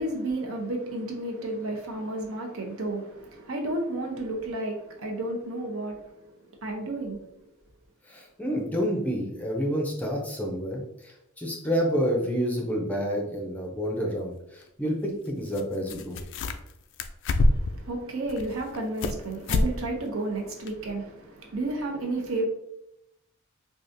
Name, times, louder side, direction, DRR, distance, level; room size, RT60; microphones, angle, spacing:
voice 1, 0.0-6.1 6.6-7.2 17.4-22.5, right 2 dB, 65° right, 0.8 m, -32 dB
voice 2, 8.1-16.2, equal, 5° left, 0.5 m, -29 dB
sound 1, 13.8-13.9 15.5-15.6 15.9-16.7 17.0-17.8 18.3-19.2 19.5-19.7 20.0-20.1 20.7-20.8, left 2 dB, 60° left, 0.3 m, -25 dB
4.8 x 2.4 x 2.6 m
head